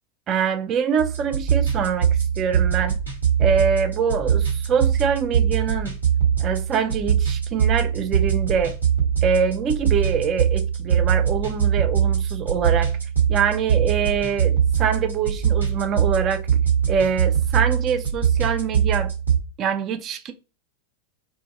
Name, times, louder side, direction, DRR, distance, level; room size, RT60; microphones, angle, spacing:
voice 1, 0.3-2.1 2.4-2.9 3.4-5.9 6.4-8.8 9.2-12.9 13.3-16.4 16.9-19.1 19.6-20.3, right 6 dB, 30° right, 0.3 m, -24 dB
sound 1, 1.0-19.4, right 8 dB, 85° right, 1.2 m, -22 dB
2.5 x 2.5 x 2.5 m
figure-of-eight pair, 90°, 0 cm